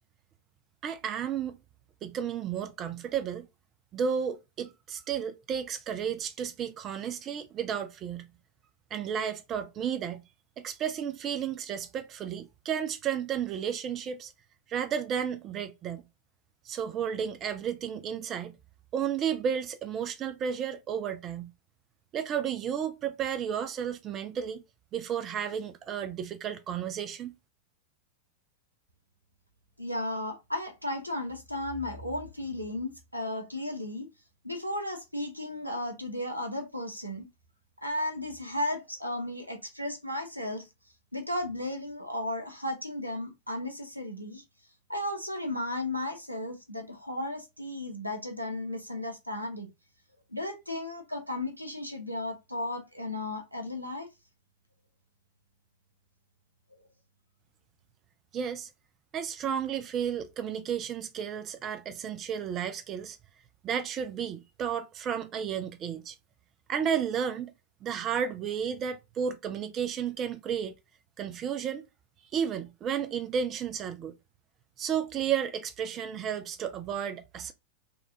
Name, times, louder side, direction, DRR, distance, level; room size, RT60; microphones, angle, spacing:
voice 1, 0.8-1.6 2.0-3.5 3.9-8.3 8.9-10.2 10.6-14.3 14.7-16.0 16.6-18.5 18.9-21.5 22.1-24.6 24.9-27.3 58.3-58.7 59.1-63.2 63.6-66.2 66.7-67.5 67.8-70.7 71.2-71.8 72.3-74.1 74.8-77.5, right 8 dB, 30° right, 0.4 m, -32 dB
voice 2, 29.8-34.1 34.4-37.3 37.8-40.7 41.1-44.4 44.9-49.7 50.3-54.1, left 1 dB, 90° right, 0.8 m, -34 dB
4.0 x 2.3 x 2.7 m
figure-of-eight pair, 90°, 0 cm